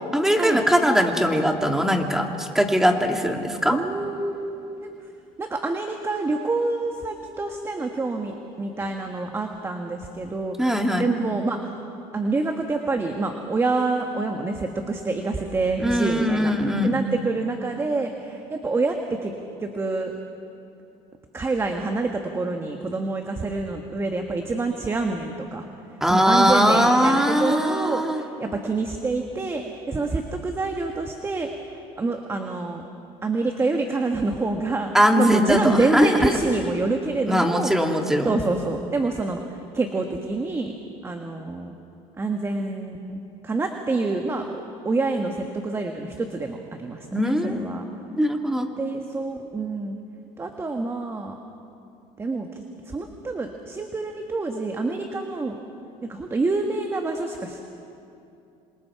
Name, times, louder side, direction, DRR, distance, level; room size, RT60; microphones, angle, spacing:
voice 1, 0.1-3.8 10.6-11.1 15.8-17.0 26.0-28.2 34.9-36.3 37.3-38.4 47.1-47.6 48.2-48.7, equal, 5° right, 3 dB, 2.1 m, -20 dB
voice 2, 3.7-4.9 5.4-10.6 11.0-11.8 12.1-16.5 16.8-19.3 19.6-20.1 21.3-25.7 26.1-32.8 33.2-34.9 35.2-37.7 38.2-39.4 39.7-40.7 41.0-41.7 42.2-44.5 44.8-47.8 48.8-50.0 50.4-51.4 52.2-55.6 56.0-57.8, right 3 dB, 20° right, 4 dB, 1.4 m, -27 dB
27.0 x 26.5 x 4.8 m, 2.7 s
cardioid pair, 120°, 13 cm